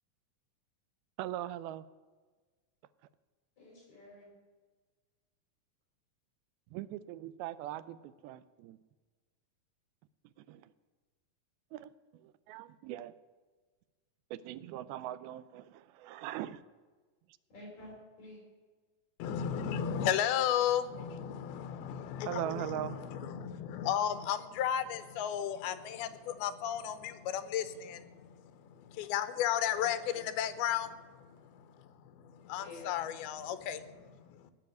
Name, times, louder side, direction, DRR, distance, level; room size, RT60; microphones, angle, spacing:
voice 1, 1.2-1.8 6.7-8.8 10.5-10.6 11.7-11.9 12.2-13.1 14.3-16.6 22.3-22.9, right 13 dB, 85° right, 15 dB, 2.4 m, -40 dB
voice 2, 3.6-4.3 17.5-18.4 22.4-22.8 23.1-23.4 29.8-30.3 32.5-33.0, left 2 dB, 45° left, -3 dB, 6.0 m, -50 dB
voice 3, 19.2-28.5 28.8-30.0 30.4-31.6 32.2-34.5, left 10 dB, 80° left, 12 dB, 2.7 m, -34 dB
17.5 x 6.0 x 9.3 m, 1.4 s
omnidirectional pair, 4.4 m